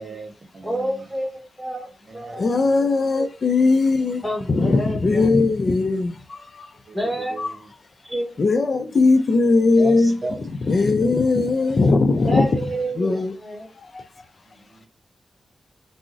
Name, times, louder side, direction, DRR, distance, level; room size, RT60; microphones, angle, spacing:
voice 1, 0.0-1.0 2.1-2.4 6.9-7.7 9.7-10.4 14.5-14.9, right 2 dB, 50° right, 0.6 m, -36 dB
voice 2, 0.6-1.9 2.1-3.3 4.2-5.3 6.9-7.4 8.0-8.4 12.2-13.7, right 1 dB, 10° right, 1.0 m, -29 dB
voice 3, 2.4-6.7 7.4-7.5 8.4-10.2 10.7-12.6 13.0-13.3 13.8-14.1, left 3 dB, 55° left, 0.4 m, -19 dB
3.6 x 2.0 x 2.5 m
cardioid pair, 70°, 0 cm